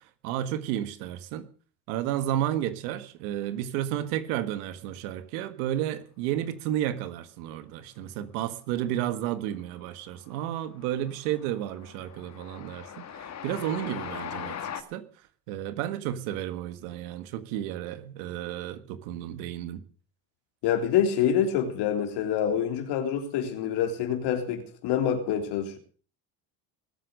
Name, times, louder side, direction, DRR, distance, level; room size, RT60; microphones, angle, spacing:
voice 1, 0.2-1.5 1.9-15.0 15.5-19.8, right 12 dB, 85° right, 1.7 m, -32 dB
Train, 9.1-9.6 9.9-14.8, left 8 dB, 40° left, 2.0 m, -40 dB
voice 2, 20.6-25.8, left 9 dB, 70° left, 3.6 m, -26 dB
20.5 x 8.3 x 6.6 m
supercardioid pair, 95°, 41 cm